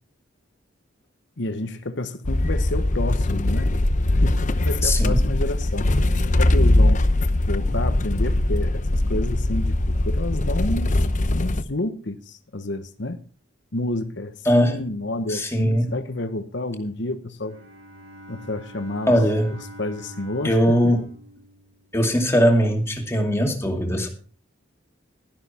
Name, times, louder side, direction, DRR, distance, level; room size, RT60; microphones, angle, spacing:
voice 1, 1.4-3.8 4.1-5.9 6.3-7.0 7.4-10.9 11.3-13.2 13.7-17.6 18.3-19.1 19.8-20.9, left 2 dB, 65° left, 1.1 m, -30 dB
sound 1, 2.2-11.6, left 1 dB, 40° left, 0.8 m, -21 dB
voice 2, 4.8-5.2 14.4-14.8 15.3-15.9 19.1-19.5 20.4-21.1 21.9-24.1, equal, 15° left, 2.4 m, -20 dB
Bowed string instrument, 17.3-22.2, equal, 80° right, 4.5 m, -44 dB
12.5 x 11.5 x 4.3 m
head